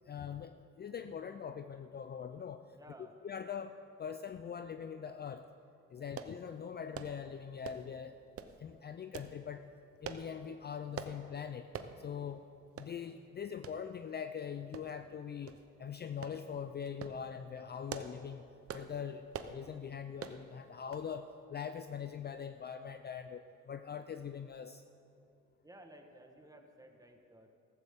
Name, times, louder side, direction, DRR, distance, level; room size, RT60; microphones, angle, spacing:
voice 1, 0.1-2.6 3.2-3.7 4.0-5.4 5.9-8.2 8.6-9.6 10.0-11.7 12.0-12.4 12.8-18.5 18.7-24.8, left 7 dB, 35° left, 9 dB, 0.4 m, -42 dB
voice 2, 2.7-3.2 6.0-6.2 25.6-27.5, right 1 dB, 10° right, 4 dB, 1.4 m, -56 dB
sound 1, 6.2-6.4 6.9-7.2 7.6-7.9 8.4-8.6 9.1-9.3 10.0-10.3 11.0-11.2 11.7-11.9 12.3-12.4 12.8-12.9 13.6-13.8 14.7-15.1 15.5-15.6 16.2-16.4 16.9-17.2 17.7-18.2 18.7-18.9 19.3-19.6 20.2-20.4 20.9-21.1 21.4-21.5, right 7 dB, 50° right, 0.8 m, -44 dB
14.5 x 14.0 x 3.6 m, 2.6 s
cardioid pair, 90°, 30 cm